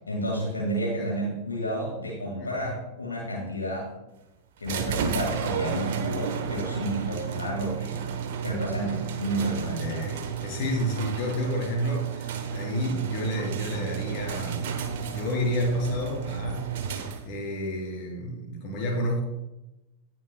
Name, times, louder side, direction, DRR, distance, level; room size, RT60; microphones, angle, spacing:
voice 1, 0.1-3.9 4.6-8.0 8.4-10.1, right 1 dB, 75° left, -2 dB, 2.1 m, -31 dB
voice 2, 2.4-2.7 9.8-14.7 15.0-16.7 17.2-19.2, equal, 40° left, -1 dB, 3.7 m, -30 dB
sound 1, 4.7-17.4, right 7 dB, 55° right, 1.1 m, -32 dB
18.0 x 6.2 x 2.3 m, 0.95 s
figure-of-eight pair, 90°, 0 cm